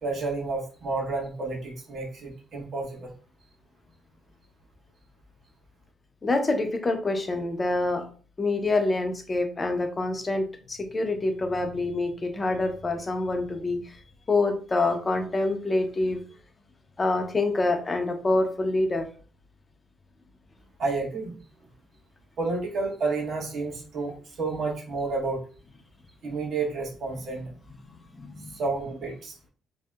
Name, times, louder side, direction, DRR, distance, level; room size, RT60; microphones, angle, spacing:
voice 1, 0.0-3.1 20.8-21.3 22.4-25.4 26.2-27.5 28.5-29.3, right 3 dB, 65° right, -1 dB, 0.9 m, -30 dB
voice 2, 6.2-8.0 8.4-14.0 14.3-16.2 17.0-19.1 28.2-28.6, left 2 dB, 30° left, 5 dB, 0.4 m, -26 dB
2.7 x 2.0 x 2.2 m, 0.39 s
cardioid pair, 90°, 0 cm